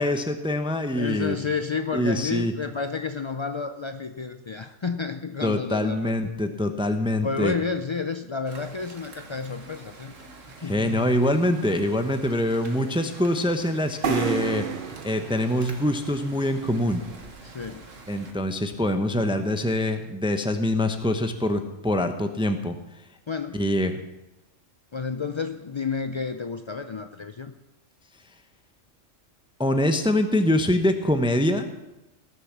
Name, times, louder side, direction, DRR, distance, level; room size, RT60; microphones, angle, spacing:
voice 1, 0.0-1.4 1.9-2.5 5.4-7.5 10.7-14.7 15.0-17.0 18.1-22.8 23.5-23.9 29.6-31.7, left 1 dB, 5° right, 7 dB, 0.7 m, -24 dB
voice 2, 0.9-6.1 7.2-10.1 10.6-11.1 17.4-17.9 23.3-23.6 24.9-27.5, left 5 dB, 50° left, 8 dB, 0.3 m, -30 dB
sound 1, 8.5-18.3, right 3 dB, 80° right, 2.0 m, -47 dB
sound 2, 14.0-17.7, right 7 dB, 45° right, 0.9 m, -32 dB
18.0 x 7.1 x 7.3 m, 0.97 s
omnidirectional pair, 1.3 m